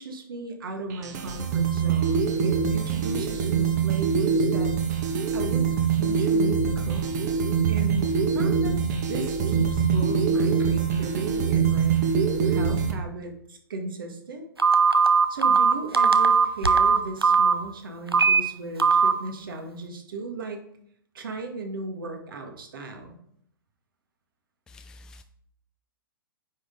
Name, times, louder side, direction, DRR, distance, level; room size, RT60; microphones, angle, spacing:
voice 1, 0.0-4.7 5.3-7.1 7.7-8.8 9.1-12.0 12.4-14.5 15.3-20.6 21.1-23.2, right 2 dB, 65° right, 4 dB, 1.9 m, -36 dB
sound 1, 0.9-12.9, right 6 dB, 45° right, 1.5 m, -24 dB
Telephone, 14.6-17.5 18.1-18.4 18.8-19.1, right 5 dB, 85° right, 0.8 m, -18 dB
voice 2, 24.7-25.2, left 2 dB, 5° left, 6 dB, 0.4 m, -48 dB
9.6 x 5.8 x 3.8 m, 0.66 s
figure-of-eight pair, 115°, 12 cm